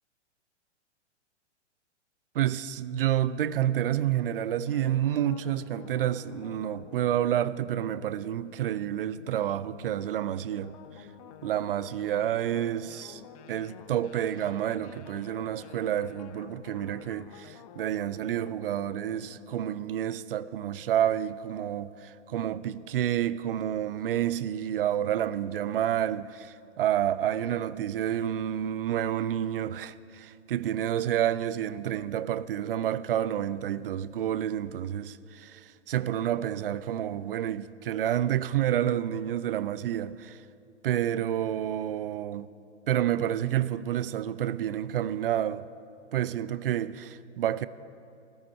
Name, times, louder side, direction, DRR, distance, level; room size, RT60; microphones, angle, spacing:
voice 1, 2.3-11.1 11.4-40.4 40.8-42.5 42.9-45.7 46.1-47.7, right 11 dB, 50° right, 0.4 m, -29 dB
sound 1, 4.6-19.8, left 10 dB, 30° left, 0.5 m, -50 dB
14.0 x 13.5 x 4.3 m
figure-of-eight pair, 115°, 36 cm